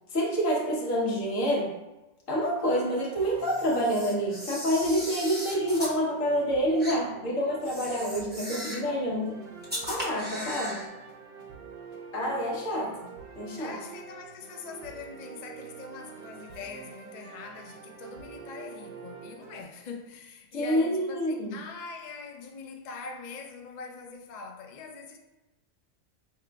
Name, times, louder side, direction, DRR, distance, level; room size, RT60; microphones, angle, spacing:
voice 1, 0.1-1.8 2.3-9.4 9.9-10.9 12.1-13.1 13.4-13.8 20.5-21.5, equal, 90° left, -3 dB, 1.3 m, -28 dB
sound 1, 2.5-19.6, right 6 dB, 60° right, 0.6 m, -47 dB
Camera, 3.4-6.0 6.8-7.0 7.6-8.9 9.6-10.9, equal, 10° right, 0.6 m, -37 dB
voice 2, 13.6-25.2, left 4 dB, 70° left, 4 dB, 0.4 m, -43 dB
4.9 x 3.0 x 2.2 m, 1.0 s
omnidirectional pair, 1.3 m